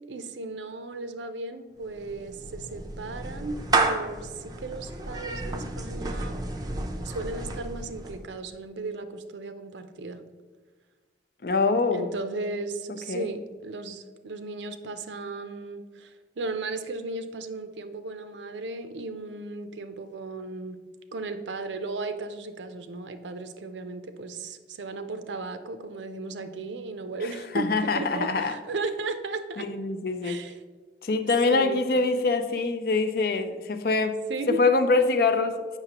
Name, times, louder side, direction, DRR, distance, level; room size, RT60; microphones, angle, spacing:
voice 1, 0.1-6.3 7.0-10.2 11.9-20.8 21.1-29.7 30.2-30.6 31.5-31.9 34.3-34.6, right 3 dB, 85° right, 9 dB, 0.5 m, -35 dB
Clapping / Meow, 1.8-8.3, right 3 dB, 20° right, 0.5 m, -31 dB
voice 2, 11.4-12.1 13.1-13.3 27.5-28.6 29.6-30.4 31.0-34.2 34.5-35.8, left 3 dB, 55° left, 8 dB, 0.5 m, -24 dB
7.8 x 5.9 x 2.9 m, 1.4 s
head